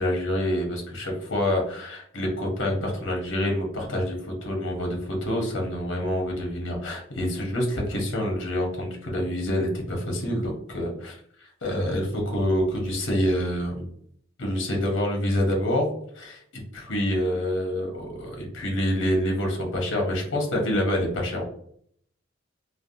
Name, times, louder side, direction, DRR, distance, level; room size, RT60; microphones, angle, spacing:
voice 1, 0.0-13.9 14.4-15.9 16.1-21.4, equal, 75° left, 0 dB, 0.9 m, -27 dB
3.2 x 2.1 x 2.5 m, 0.64 s
head